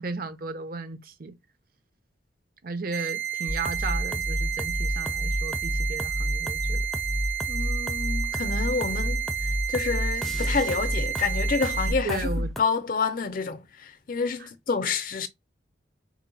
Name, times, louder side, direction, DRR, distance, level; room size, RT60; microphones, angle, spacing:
voice 1, 0.0-1.4 2.6-6.8 12.0-12.5 14.4-14.5, right 3 dB, 55° right, 0.7 m, -35 dB
sound 1, 2.9-11.9, right 10 dB, 80° right, 2.5 m, -31 dB
sound 2, 3.5-12.6, equal, ahead, 0.4 m, -30 dB
voice 2, 7.5-15.3, left 4 dB, 50° left, 0.5 m, -29 dB
4.4 x 2.1 x 3.8 m
head